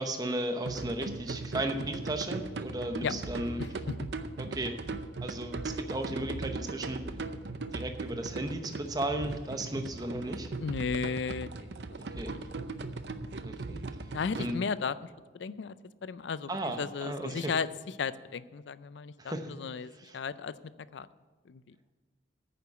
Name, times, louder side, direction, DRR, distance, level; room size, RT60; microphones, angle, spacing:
voice 1, 0.0-3.6 4.4-4.8 5.2-7.0 7.7-10.5 12.0-12.6 13.4-13.8 14.4-14.5 16.5-17.5 19.2-19.5 20.0-20.2, right 1 dB, 20° right, 6 dB, 0.8 m, -35 dB
sound 1, 0.6-14.5, right 3 dB, 65° right, 0.6 m, -38 dB
voice 2, 3.6-4.1 10.6-11.7 14.1-15.0 15.3-15.7 16.0-16.5 16.8-17.7 18.0-20.5 20.9-21.1 21.5-21.8, left 5 dB, 70° left, 16 dB, 0.4 m, -34 dB
9.5 x 6.8 x 8.4 m, 1.3 s
head